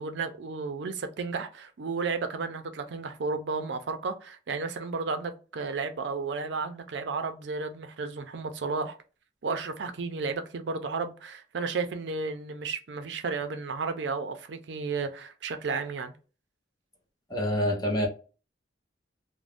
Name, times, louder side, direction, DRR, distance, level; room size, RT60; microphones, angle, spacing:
voice 1, 0.0-9.0 9.4-16.1, right 4 dB, 70° right, 0.5 m, -33 dB
voice 2, 17.3-18.1, equal, 20° left, 0.8 m, -26 dB
2.5 x 2.1 x 3.3 m
head